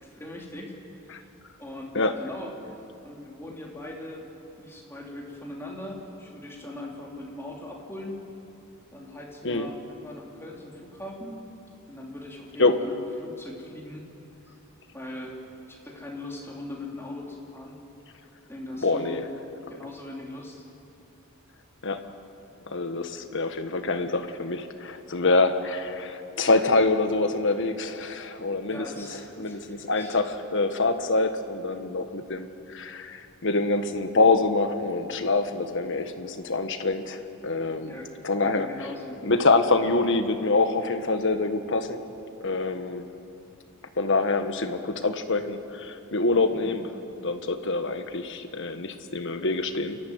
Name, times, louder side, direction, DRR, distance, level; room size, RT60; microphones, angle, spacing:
voice 1, 0.0-1.3 1.6-2.5 3.0-4.3 4.6-8.2 8.9-11.4 11.9-14.1 14.4-14.5 14.9-15.4 15.7-17.8 18.5-19.2 19.7-20.7 28.6-30.3 37.8-38.1 38.4-39.2 46.5-46.7, left 1 dB, 10° left, -2 dB, 3.2 m, -40 dB
voice 2, 18.8-19.2 21.8-22.0 22.7-29.1 29.4-38.0 38.2-38.7 39.2-42.0 42.4-43.0 44.0-46.8 47.2-50.0, left 3 dB, 60° left, 8 dB, 1.4 m, -25 dB
29.5 x 14.0 x 9.6 m, 2.8 s
head